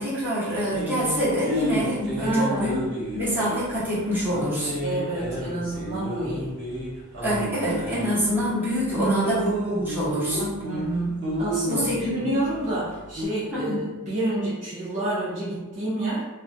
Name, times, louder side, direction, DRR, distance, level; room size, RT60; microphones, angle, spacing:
voice 1, 0.0-2.8 3.1-4.8 7.2-9.4 9.7-10.6 11.7-12.4 13.5-13.8, equal, 10° right, -10 dB, 0.8 m, -26 dB
sound 1, 0.7-13.3, right 1 dB, 50° right, 0.9 m, -32 dB
voice 2, 2.2-2.8 4.8-6.5 8.9-9.4 10.6-16.2, right 1 dB, 30° right, -8 dB, 0.4 m, -28 dB
2.3 x 2.0 x 2.5 m, 1.1 s
head